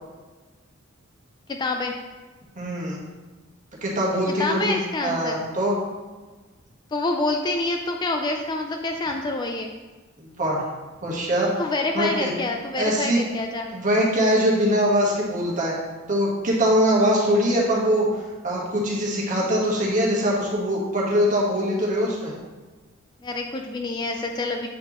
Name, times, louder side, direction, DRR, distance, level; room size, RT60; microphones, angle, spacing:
voice 1, 1.5-1.9 4.3-5.4 6.9-9.7 11.6-13.7 23.2-24.7, left 2 dB, 20° left, 3 dB, 0.3 m, -27 dB
voice 2, 2.6-3.0 3.8-4.8 5.0-5.8 10.2-10.7 11.0-11.5 11.9-12.3 12.7-13.2 13.7-15.8 16.1-22.3, equal, 35° right, -4 dB, 1.3 m, -22 dB
7.4 x 4.4 x 3.0 m, 1.3 s
head